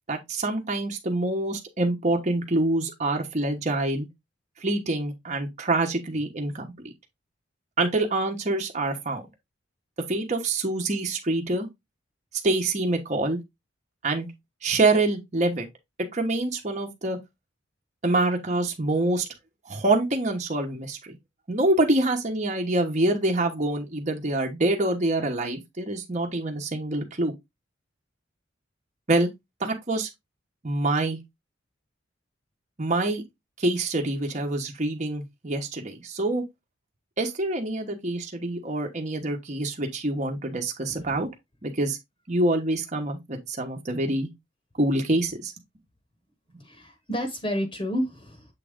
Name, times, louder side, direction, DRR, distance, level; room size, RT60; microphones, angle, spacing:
voice 1, 0.1-4.1 4.6-6.9 7.8-9.2 10.1-11.7 12.4-13.4 14.0-14.3 14.6-15.7 16.1-17.2 18.0-19.3 19.7-21.2 21.5-27.3 29.1-29.3 29.6-30.1 30.6-31.2 32.8-33.2 33.6-36.4 37.2-41.3 41.6-42.0 42.3-44.3 44.8-45.5, right 2 dB, 35° right, 1.2 m, -26 dB
voice 2, 46.6-48.5, equal, 25° left, 1.1 m, -30 dB
7.6 x 3.8 x 3.6 m
head